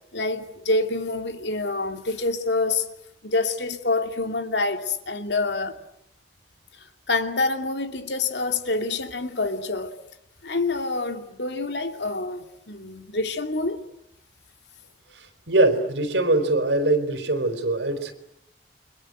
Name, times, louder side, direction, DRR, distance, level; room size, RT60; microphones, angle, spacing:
voice 1, 0.1-2.9 3.2-5.8 6.7-9.9 10.4-13.8, left 3 dB, 75° left, 2.6 m, -27 dB
voice 2, 15.5-18.1, right 2 dB, 85° right, 4.4 m, -22 dB
30.0 x 25.0 x 8.0 m
head